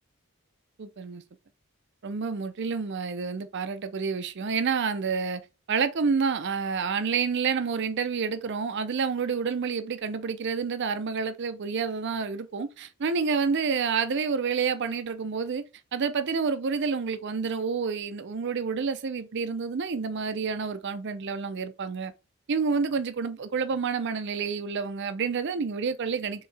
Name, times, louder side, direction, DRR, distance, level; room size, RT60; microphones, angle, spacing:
voice 1, 0.8-1.2 2.0-5.4 5.7-15.6 15.9-22.1 22.5-26.5, right 5 dB, 50° right, 0.5 m, -29 dB
4.5 x 3.1 x 3.2 m
head